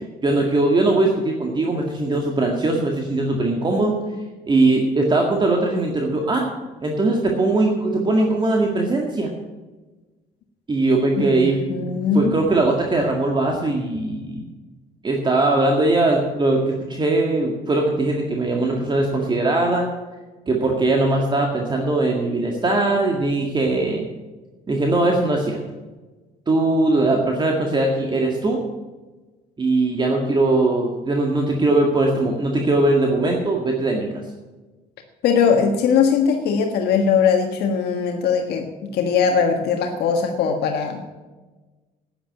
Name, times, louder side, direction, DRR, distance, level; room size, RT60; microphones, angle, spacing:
voice 1, 0.2-4.0 4.5-6.5 6.8-9.3 10.7-14.4 15.0-19.9 20.5-24.1 24.7-25.6 26.5-28.6 29.6-34.1, right 2 dB, 25° right, 0 dB, 1.9 m, -20 dB
voice 2, 11.2-12.4 35.2-41.0, left 6 dB, 75° left, 3 dB, 1.5 m, -20 dB
10.0 x 10.0 x 7.9 m, 1.2 s
cardioid pair, 110°, 17 cm